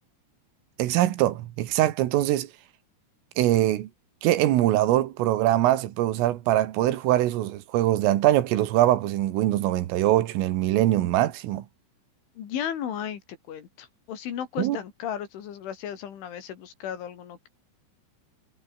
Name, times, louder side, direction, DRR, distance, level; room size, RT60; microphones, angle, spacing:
voice 1, 0.8-2.5 3.4-3.9 4.2-11.7 14.6-14.8, right 14 dB, 85° right, 4.2 m, -23 dB
voice 2, 12.4-13.2 13.5-17.5, left 9 dB, 70° left, 5.4 m, -34 dB
omnidirectional pair, 5.7 m